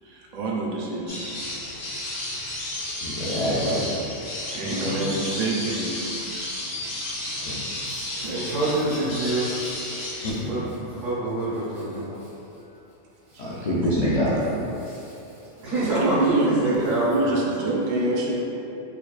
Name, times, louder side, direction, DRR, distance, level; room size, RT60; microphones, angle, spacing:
voice 1, 0.0-1.3 4.5-5.9 8.2-8.5 8.7-8.8 13.3-13.7 15.6-18.3, right 2 dB, 70° right, -3 dB, 0.4 m, -27 dB
sound 1, 1.1-10.3, left 1 dB, 50° left, 0.7 m, -32 dB
voice 2, 3.0-3.8 7.4-7.6 10.2-10.5 13.4-14.4 14.9-15.0, equal, 75° left, -9 dB, 0.3 m, -25 dB
voice 3, 4.5-5.2 7.8-9.7 10.5-12.3 14.8-15.1 15.6-17.4, right 2 dB, 90° right, -12 dB, 1.2 m, -27 dB
4.4 x 2.4 x 2.3 m, 2.9 s
omnidirectional pair, 1.3 m